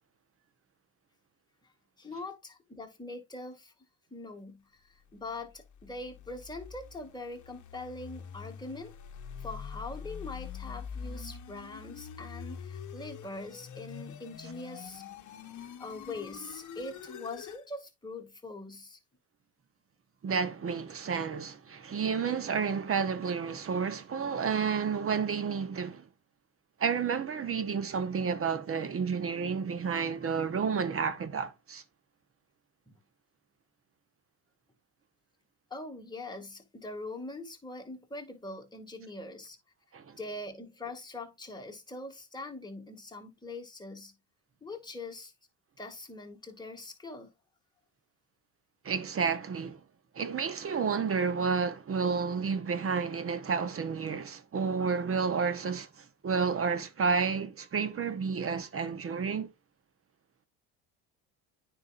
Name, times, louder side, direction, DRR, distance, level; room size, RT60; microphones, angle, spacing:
voice 1, 2.0-3.7 4.1-8.9 9.4-15.0 15.8-19.0 32.9-33.0 35.7-39.6 40.2-44.1 44.6-45.3 45.8-47.3, left 2 dB, 10° left, 2.0 m, -42 dB
sound 1, 5.5-17.6, left 7 dB, 45° left, 1.1 m, -45 dB
voice 2, 20.2-26.1 26.8-31.8 39.9-40.2 48.8-49.8 50.1-59.5, right 5 dB, 30° right, 1.0 m, -31 dB
9.5 x 4.9 x 2.5 m
supercardioid pair, 85°, 42 cm